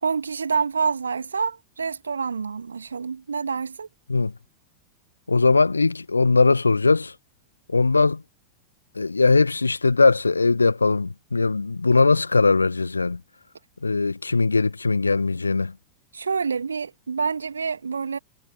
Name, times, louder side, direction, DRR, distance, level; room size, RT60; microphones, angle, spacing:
voice 1, 0.0-3.9 16.1-18.2, right 5 dB, 75° right, 2.7 m, -27 dB
voice 2, 5.3-7.1 7.7-8.2 9.0-13.2 13.8-15.7, left 3 dB, 80° left, 1.6 m, -20 dB
figure-of-eight pair, 90°, 0 cm